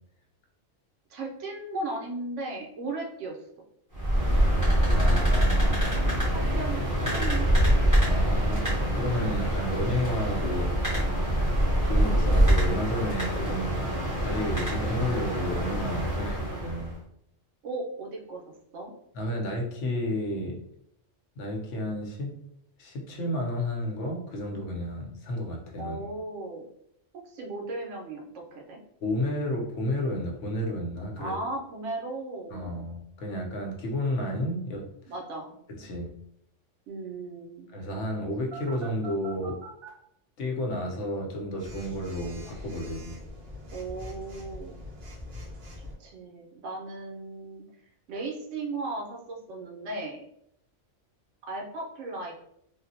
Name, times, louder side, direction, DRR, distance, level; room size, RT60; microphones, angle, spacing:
voice 1, 1.1-3.4 5.6-5.8 6.3-7.8 16.1-16.7 17.6-18.4 18.7-18.9 25.8-26.6 27.1-28.8 31.2-32.8 35.1-35.6 36.9-37.7 43.7-44.8 46.0-47.6 48.1-50.2 51.4-52.3, right 2 dB, 80° right, 0 dB, 1.0 m, -36 dB
sound 1, 3.9-16.9, right 1 dB, 15° right, 1.0 m, -25 dB
voice 2, 4.9-6.0 8.0-11.0 11.8-13.7 14.2-17.0 19.1-20.6 21.4-22.4 22.8-26.1 29.0-31.3 32.5-34.8 35.8-36.1 37.7-39.6 40.4-43.2, left 1 dB, 80° left, 1 dB, 1.0 m, -32 dB
Telephone, 38.5-39.9 41.6-45.9, equal, 55° right, 1.1 m, -43 dB
3.5 x 2.1 x 2.7 m, 0.73 s
omnidirectional pair, 1.3 m